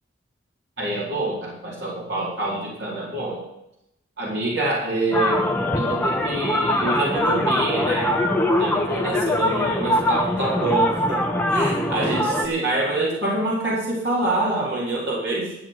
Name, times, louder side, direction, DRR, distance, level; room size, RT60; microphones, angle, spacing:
voice 1, 0.8-3.4 4.2-5.4 5.8-8.2 8.6-11.2 11.5-15.5, right 2 dB, 70° right, -5 dB, 4.1 m, -26 dB
sound 1, 5.1-12.5, left 1 dB, 10° left, 1.5 m, -22 dB
13.0 x 7.0 x 8.0 m, 0.84 s
head